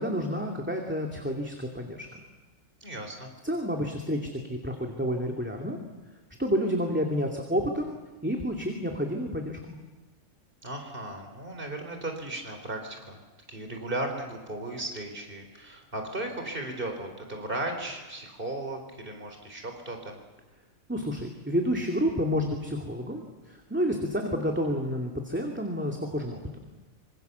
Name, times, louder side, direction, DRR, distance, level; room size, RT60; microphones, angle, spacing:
voice 1, 0.0-2.1 3.4-5.8 6.4-7.9 8.2-9.8 20.9-26.4, equal, 10° right, 1 dB, 2.6 m, -29 dB
voice 2, 2.8-3.3 10.6-13.2 13.5-20.2, right 1 dB, 40° right, 4 dB, 4.2 m, -36 dB
26.0 x 26.0 x 7.0 m, 1.2 s
omnidirectional pair, 1.4 m